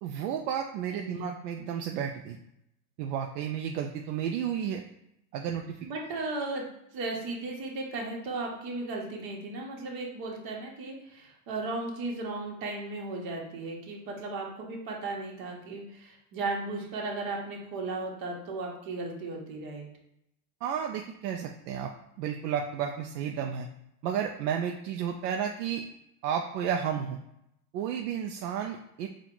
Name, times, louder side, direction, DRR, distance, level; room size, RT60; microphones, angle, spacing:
voice 1, 0.0-2.4 3.0-4.8 5.3-5.9 20.6-21.9 22.2-23.7 24.0-25.8 26.2-27.2 27.7-29.1, right 8 dB, 70° right, 3 dB, 0.6 m, -32 dB
voice 2, 0.9-1.3 5.9-6.7 6.9-19.9, right 3 dB, 45° right, -1 dB, 1.3 m, -36 dB
4.3 x 2.4 x 3.8 m, 0.81 s
supercardioid pair, 120°, 49 cm